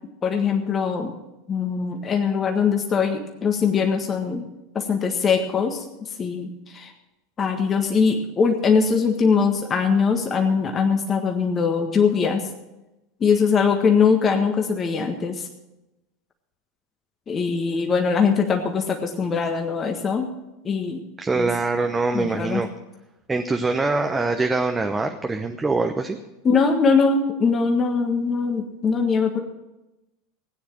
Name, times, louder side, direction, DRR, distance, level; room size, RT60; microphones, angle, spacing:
voice 1, 0.2-1.1 1.5-4.5 4.7-5.8 6.2-6.9 7.4-12.4 13.2-15.5 17.3-20.3 20.6-21.0 21.3-21.5 22.1-22.6 26.4-29.4, left 5 dB, 30° left, 3 dB, 1.6 m, -21 dB
voice 2, 21.2-22.7 23.3-26.2, right 3 dB, 15° right, 5 dB, 0.9 m, -23 dB
16.5 x 9.6 x 6.1 m, 0.97 s
figure-of-eight pair, 80°, 0 cm